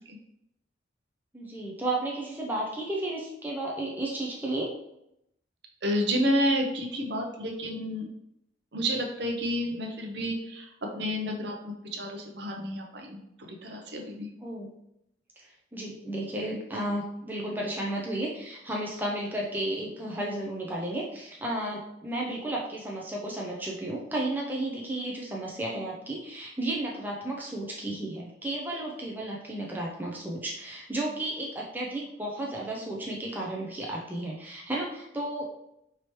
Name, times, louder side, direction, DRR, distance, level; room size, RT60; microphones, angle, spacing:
voice 1, 1.3-4.7 14.4-14.7 15.4-35.5, right 1 dB, 10° right, -3 dB, 0.5 m, -33 dB
voice 2, 5.8-8.1 8.7-10.7 10.9-14.3, equal, 60° right, 2 dB, 0.7 m, -30 dB
4.8 x 2.9 x 3.1 m, 0.80 s
head